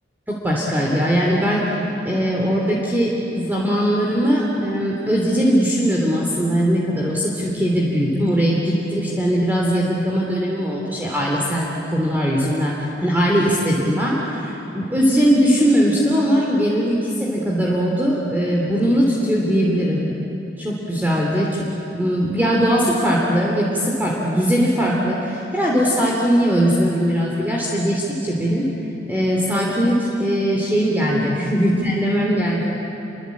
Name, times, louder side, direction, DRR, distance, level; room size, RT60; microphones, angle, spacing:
voice 1, 0.3-1.6 2.0-11.6 11.9-20.1 20.6-28.7 29.1-32.7, equal, 10° right, -4 dB, 3.1 m, -20 dB
28.5 x 24.5 x 8.5 m, 2.9 s
head